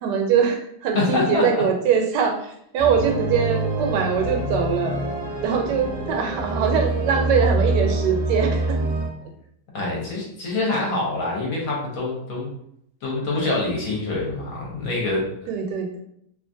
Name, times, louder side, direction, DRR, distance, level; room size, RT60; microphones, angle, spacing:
voice 1, 0.0-2.4 2.7-5.0 5.4-8.8 15.5-16.0, right 6 dB, 85° right, 3 dB, 1.2 m, -22 dB
voice 2, 0.9-1.6 9.7-12.5 13.0-15.3, left 2 dB, 60° left, -3 dB, 1.1 m, -25 dB
sound 1, 2.8-9.1, right 2 dB, 10° left, 1.1 m, -25 dB
2.8 x 2.4 x 2.5 m, 0.72 s
omnidirectional pair, 1.8 m